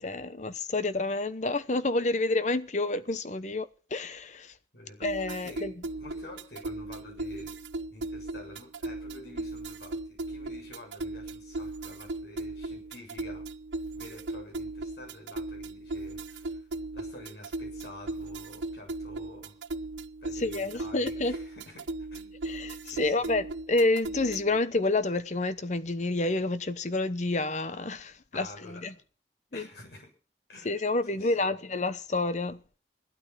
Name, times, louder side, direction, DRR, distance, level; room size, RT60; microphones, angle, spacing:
voice 1, 0.0-4.5 5.0-5.7 20.4-21.3 22.4-28.9 29.5-29.7 30.6-32.6, left 2 dB, 40° left, 0.9 m, -29 dB
voice 2, 4.7-7.6 7.8-13.5 13.9-16.7 16.9-19.6 20.2-22.4 22.8-23.3 28.3-29.0 29.5-30.1 30.5-30.8 31.0-31.5, left 1 dB, 65° left, 7.1 m, -49 dB
sound 1, 5.0-24.6, right 2 dB, 90° right, 0.7 m, -37 dB
16.5 x 12.5 x 5.9 m
head